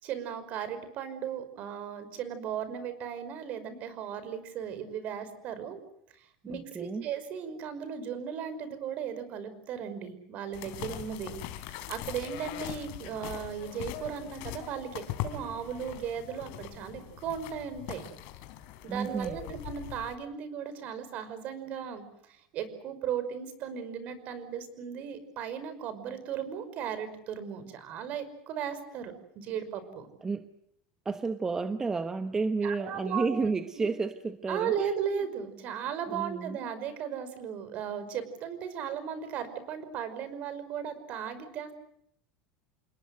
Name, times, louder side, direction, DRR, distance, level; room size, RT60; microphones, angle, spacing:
voice 1, 0.0-5.8 6.2-11.4 11.7-18.1 18.8-30.1 32.6-33.3 33.8-33.9 34.5-41.7, right 8 dB, 45° right, 13 dB, 5.5 m, -36 dB
voice 2, 6.4-7.1 18.9-19.5 30.2-30.5 31.0-34.9 36.1-36.6, right 4 dB, 15° right, 9 dB, 1.1 m, -31 dB
sound 1, 10.5-20.1, left 13 dB, 60° left, 3.6 m, -41 dB
28.5 x 21.0 x 7.9 m, 0.73 s
supercardioid pair, 145°, 4 cm